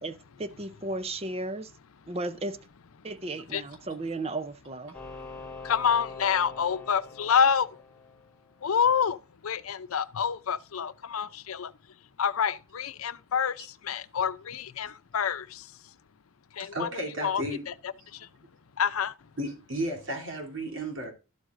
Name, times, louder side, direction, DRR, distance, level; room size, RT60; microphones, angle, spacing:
voice 1, 0.0-1.7 2.1-2.6 3.0-4.9, right 2 dB, 30° right, 0.6 m, -34 dB
sound 1, 4.9-8.6, left 4 dB, 5° left, 2.9 m, -44 dB
voice 2, 5.7-7.7 8.6-9.2 9.4-11.7 12.2-13.5 13.9-15.4 16.6-16.9 17.2-17.7 18.8-19.1, left 7 dB, 90° left, 0.6 m, -27 dB
voice 3, 16.6-17.7 19.4-21.1, right 1 dB, 65° right, 3.1 m, -33 dB
12.5 x 7.9 x 2.5 m
head